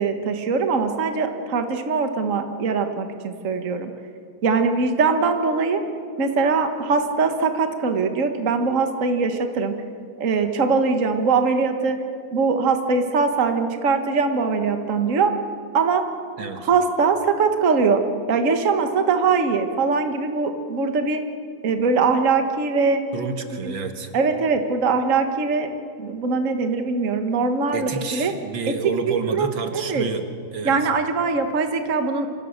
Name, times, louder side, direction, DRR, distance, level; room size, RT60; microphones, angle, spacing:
voice 1, 0.0-3.9 4.4-5.8 6.2-9.8 10.2-12.0 12.3-15.3 15.7-16.0 16.7-18.0 18.3-21.2 21.6-23.0 23.6-23.7 24.1-25.7 26.0-28.3 28.7-28.8 29.1-30.1 30.6-32.3, right 4 dB, 40° right, 6 dB, 1.7 m, -22 dB
voice 2, 16.4-16.7 23.1-24.1 27.7-30.2 30.5-30.8, right 4 dB, 70° right, 6 dB, 2.3 m, -29 dB
27.5 x 26.0 x 6.6 m, 2.4 s
omnidirectional pair, 2.2 m